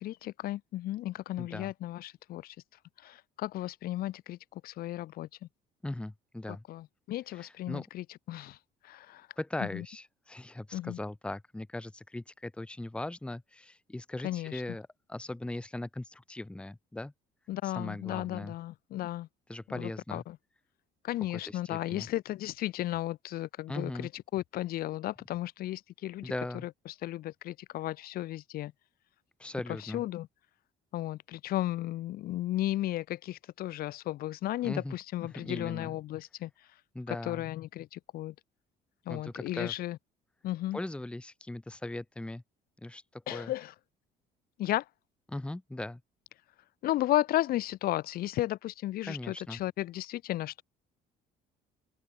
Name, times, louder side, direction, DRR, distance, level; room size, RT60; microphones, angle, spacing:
voice 1, 0.0-2.5 3.0-4.4 4.6-5.3 6.7-8.6 8.9-9.2 9.7-9.8 10.7-11.0 14.2-14.5 17.5-19.3 19.8-20.4 21.0-26.3 26.9-28.7 29.8-30.3 30.9-36.5 37.3-38.3 39.1-40.0 40.4-40.8 43.3-43.7 44.6-44.8 46.8-50.6, left 15 dB, 65° left, 0.6 m, -34 dB
voice 2, 1.4-1.7 5.8-6.6 7.3-7.9 9.4-17.1 17.6-18.5 19.5-20.2 21.5-22.1 23.7-24.1 26.2-26.7 29.4-30.0 34.6-34.9 35.3-36.0 36.9-37.4 39.1-39.7 40.7-42.4 42.8-43.5 45.3-46.0 49.1-49.6, left 2 dB, 5° left, 0.9 m, -39 dB
open air
cardioid pair, 110°, 17 cm